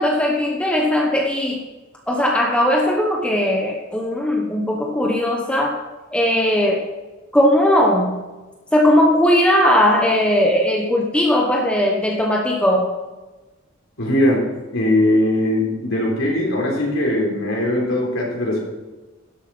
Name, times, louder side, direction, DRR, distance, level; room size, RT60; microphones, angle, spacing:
voice 1, 0.0-1.6 2.1-5.8 6.1-6.9 7.3-8.3 8.7-13.0, left 1 dB, 5° left, -1 dB, 1.0 m, -18 dB
voice 2, 14.0-18.6, left 1 dB, 70° left, -2 dB, 3.9 m, -20 dB
11.5 x 7.6 x 6.1 m, 1.2 s
head